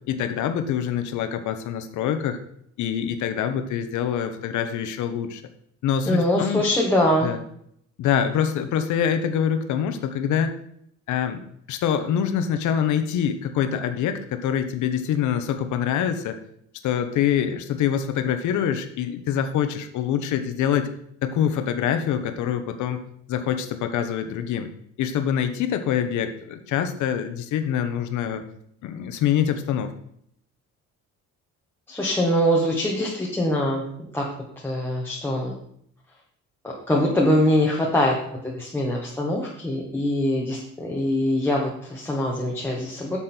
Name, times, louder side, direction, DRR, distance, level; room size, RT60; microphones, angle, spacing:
voice 1, 0.1-2.4 2.8-5.4 5.8-6.7 7.2-7.4 8.0-10.6 11.1-11.4 11.7-16.4 16.8-20.9 21.2-23.0 23.3-24.7 25.0-28.4 28.8-29.9, left 9 dB, 80° left, 8 dB, 1.1 m, -25 dB
voice 2, 6.1-7.3 31.9-33.8 34.1-34.3 34.6-35.5 36.6-43.2, left 1 dB, 5° left, -3 dB, 1.3 m, -23 dB
10.0 x 7.4 x 4.4 m, 0.68 s
cardioid pair, 170°, 29 cm